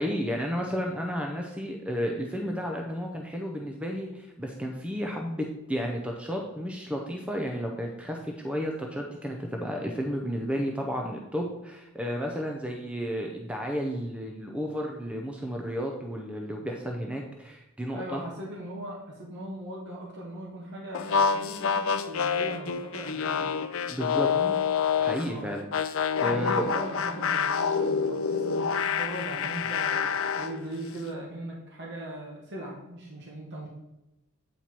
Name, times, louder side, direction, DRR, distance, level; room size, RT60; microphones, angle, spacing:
voice 1, 0.0-18.2 23.9-24.3 25.0-25.7 26.2-26.6, equal, 5° right, 1 dB, 0.6 m, -32 dB
voice 2, 17.9-23.5 24.2-24.6 25.2-25.5 26.3-33.7, right 1 dB, 50° right, -3 dB, 1.5 m, -39 dB
sound 1, 20.9-25.3 25.7-30.6, left 6 dB, 60° left, 0.5 m, -27 dB
8.4 x 4.4 x 4.4 m, 0.96 s
head